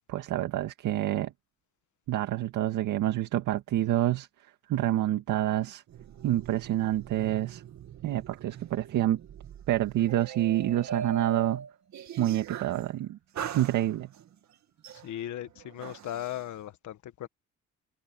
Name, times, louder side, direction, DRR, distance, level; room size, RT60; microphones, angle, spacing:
voice 1, 0.1-1.3 2.1-4.3 4.7-5.8 6.2-7.6 8.0-9.2 9.7-11.6 12.2-13.2 13.5-14.1, right 13 dB, 85° right, 2.1 m, -27 dB
sound 1, 5.9-12.9 13.4-14.3 14.8-16.4, right 7 dB, 65° right, 2.6 m, -41 dB
voice 2, 14.9-17.3, left 12 dB, 75° left, 1.4 m, -37 dB
cardioid pair, 90°, 30 cm